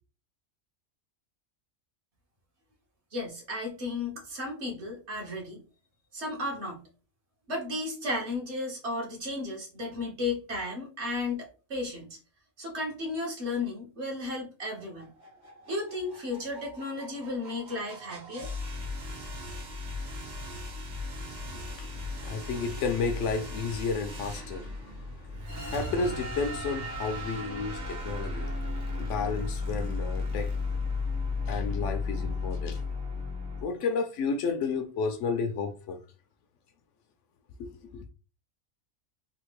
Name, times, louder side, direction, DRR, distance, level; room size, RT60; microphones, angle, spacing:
voice 1, 3.1-5.6 6.1-6.8 7.5-12.2 12.6-15.1 15.7-18.5, left 2 dB, 60° right, 1.4 m, -34 dB
sound 1, 14.8-33.6, left 3 dB, 40° right, 1.0 m, -35 dB
voice 2, 21.5-30.7 31.5-32.8 33.6-36.0 37.6-38.0, left 4 dB, 70° left, 0.9 m, -32 dB
3.5 x 2.4 x 3.0 m
omnidirectional pair, 1.3 m